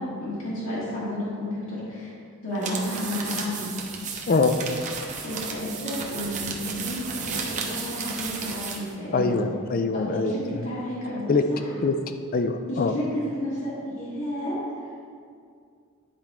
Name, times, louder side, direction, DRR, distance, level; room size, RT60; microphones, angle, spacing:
voice 1, 0.0-2.1 2.4-3.7 5.2-9.4 9.9-11.6 12.7-14.5, left 1 dB, 70° left, -10 dB, 1.8 m, -31 dB
sound 1, 2.6-8.9, right 5 dB, 35° right, 0.7 m, -33 dB
voice 2, 9.1-10.6 11.3-11.5 11.8-12.0 12.3-12.9, left 4 dB, 40° left, 8 dB, 0.4 m, -23 dB
9.7 x 4.3 x 3.6 m, 2.3 s
head